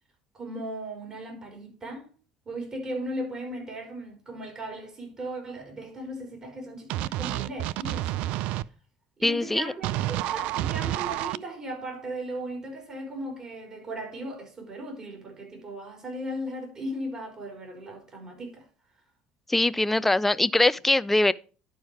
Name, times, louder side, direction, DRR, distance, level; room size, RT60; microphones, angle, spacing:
voice 1, 0.3-2.1 2.4-8.3 9.2-18.7, right 1 dB, 30° right, 4.4 m, -37 dB
sound 1, 6.9-8.6 9.8-11.4, right 14 dB, 70° right, 0.3 m, -29 dB
voice 2, 9.2-9.7 19.5-21.3, left 2 dB, 10° left, 0.4 m, -22 dB
11.0 x 4.8 x 4.8 m
supercardioid pair, 100°, 2 cm